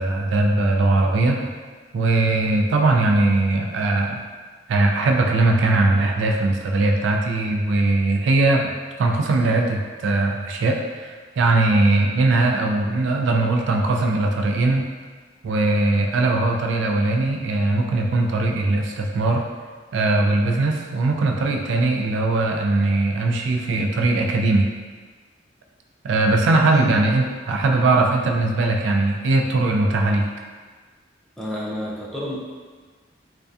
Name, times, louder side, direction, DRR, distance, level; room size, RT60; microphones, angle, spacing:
voice 1, 0.0-1.4 1.9-4.2 4.7-8.7 9.0-14.9 15.4-19.4 19.9-24.7 26.0-30.2, right 2 dB, 75° right, 2 dB, 0.3 m, -20 dB
voice 2, 31.4-32.4, left 1 dB, ahead, -6 dB, 0.3 m, -29 dB
2.6 x 2.2 x 2.3 m, 1.5 s
head